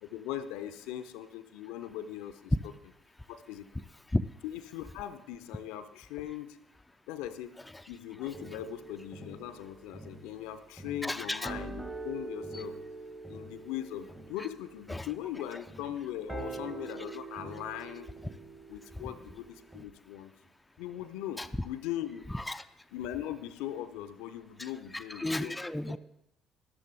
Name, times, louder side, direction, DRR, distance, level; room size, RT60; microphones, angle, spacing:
voice 1, 0.0-2.5 3.3-3.7 4.4-6.6 7.1-7.6 7.9-12.8 13.3-18.1 18.7-20.3 20.8-22.2 22.9-25.6 25.9-26.0, left 11 dB, 65° left, 13 dB, 0.5 m, -40 dB
sound 1, 8.2-19.8, right 3 dB, 15° right, 1.3 m, -45 dB
voice 2, 11.0-11.5 12.5-12.6 14.9-15.1 21.4-21.5 22.3-22.6 24.6-26.0, left 1 dB, 10° left, 9 dB, 0.4 m, -33 dB
13.0 x 12.0 x 3.4 m, 0.79 s
figure-of-eight pair, 50°, 0 cm